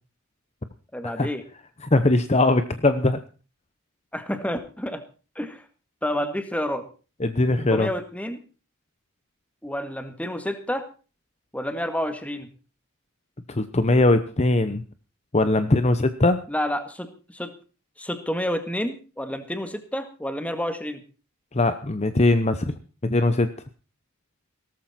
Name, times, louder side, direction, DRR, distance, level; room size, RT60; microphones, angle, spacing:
voice 1, 0.9-1.4 4.1-5.0 5.4-5.7 6.0-6.8 7.7-8.4 9.6-10.9 11.5-12.5 16.5-17.5 18.0-21.0, equal, 5° left, 9 dB, 1.9 m, -29 dB
voice 2, 1.9-3.2 7.2-7.9 13.5-14.8 15.3-16.4 21.5-22.7 23.0-23.5, left 2 dB, 30° left, 11 dB, 0.9 m, -20 dB
17.5 x 14.0 x 4.3 m, 0.36 s
head